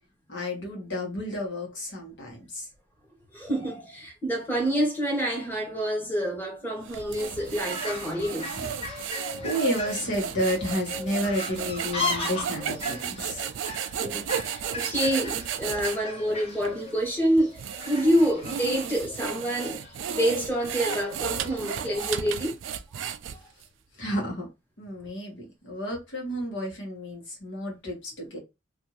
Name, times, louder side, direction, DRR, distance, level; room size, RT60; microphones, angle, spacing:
voice 1, 0.3-2.7 8.5-8.8 9.3-13.5 24.0-24.4 24.8-28.4, equal, 75° left, 1.2 m, -31 dB
voice 2, 3.3-8.5 14.0-17.6 17.8-19.8 20.1-22.6 22.9-23.4, equal, 10° left, 1.1 m, -27 dB
sound 1, 6.8-16.0 16.6-16.7 17.4-23.6, right 8 dB, 85° right, 0.3 m, -34 dB
Fowl, 7.3-22.2, left 3 dB, 35° left, 1.0 m, -38 dB
2.6 x 2.5 x 3.0 m
head